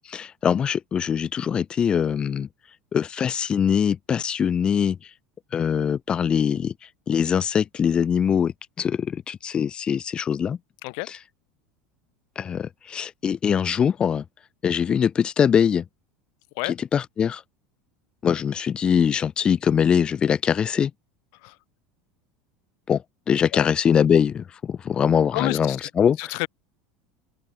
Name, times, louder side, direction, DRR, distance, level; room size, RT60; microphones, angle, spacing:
voice 1, 0.1-2.5 2.9-5.0 5.5-6.7 7.1-10.6 12.3-14.2 14.6-15.8 16.9-17.4 18.2-20.9 22.9-26.3, left 7 dB, 35° left, 1.6 m, -22 dB
voice 2, 25.3-25.9 26.2-26.5, left 40 dB or more, 65° left, 1.5 m, -29 dB
open air
hypercardioid pair, 90°, 3 cm